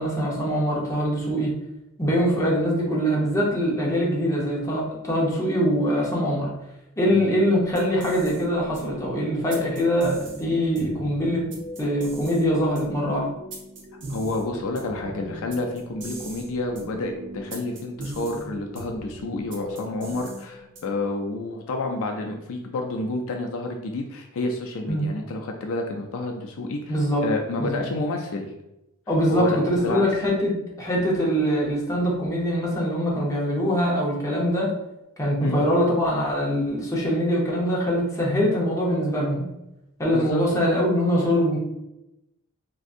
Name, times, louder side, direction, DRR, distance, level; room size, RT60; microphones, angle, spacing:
voice 1, 0.0-1.5 2.0-6.5 7.0-11.4 11.8-13.3 24.9-25.1 26.9-27.2 27.6-27.9 29.1-34.7 35.2-39.5 40.0-41.6, equal, 15° left, -4 dB, 0.8 m, -23 dB
sound 1, 7.6-21.1, right 1 dB, 55° right, 0.7 m, -39 dB
voice 2, 14.1-27.0 27.2-28.5 29.3-30.0 35.4-35.6 40.1-40.5, left 2 dB, 65° left, 3 dB, 0.4 m, -29 dB
3.6 x 2.6 x 2.5 m, 0.91 s
head